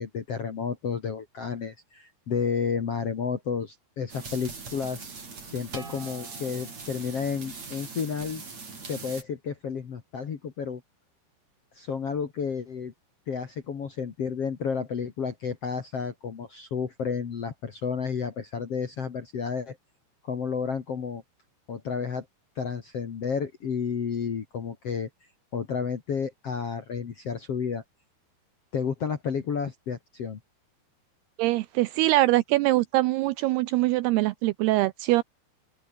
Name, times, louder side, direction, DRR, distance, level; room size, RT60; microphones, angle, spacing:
voice 1, 0.0-5.1 5.4-8.4 8.8-10.8 11.7-12.9 13.3-19.8 20.2-21.2 21.7-22.3 22.6-25.1 25.5-27.8 28.7-30.4, left 6 dB, 45° left, 2.2 m, -31 dB
sound 1, 4.1-9.2, right 4 dB, 40° right, 6.4 m, -41 dB
voice 2, 31.4-35.2, right 18 dB, 80° right, 2.4 m, -23 dB
open air
omnidirectional pair, 5.1 m